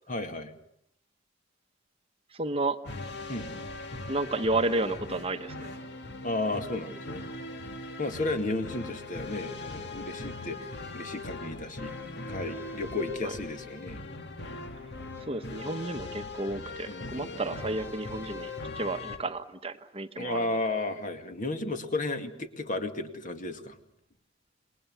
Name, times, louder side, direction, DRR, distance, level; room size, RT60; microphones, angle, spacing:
voice 1, 0.1-0.5 3.3-3.4 6.2-7.2 8.0-11.9 12.3-14.0 16.9-17.6 20.2-23.8, left 2 dB, 40° left, 7 dB, 2.3 m, -33 dB
voice 2, 2.3-2.8 4.1-5.7 13.2-13.3 15.2-20.6, right 2 dB, 30° right, 8 dB, 1.1 m, -32 dB
sound 1, 2.8-19.2, left 3 dB, 55° left, 2.1 m, -40 dB
27.5 x 21.5 x 8.0 m, 0.71 s
head